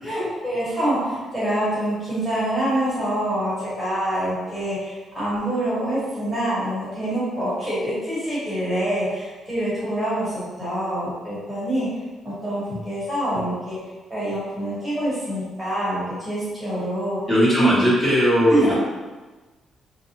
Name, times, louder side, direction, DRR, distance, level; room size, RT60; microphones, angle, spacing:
voice 1, 0.0-11.9 12.2-13.8 14.1-17.2 18.5-18.7, right 1 dB, 15° right, -10 dB, 1.2 m, -26 dB
voice 2, 17.3-18.7, equal, 20° left, -11 dB, 1.4 m, -18 dB
2.6 x 2.1 x 2.8 m, 1.2 s
cardioid pair, 90°, 0 cm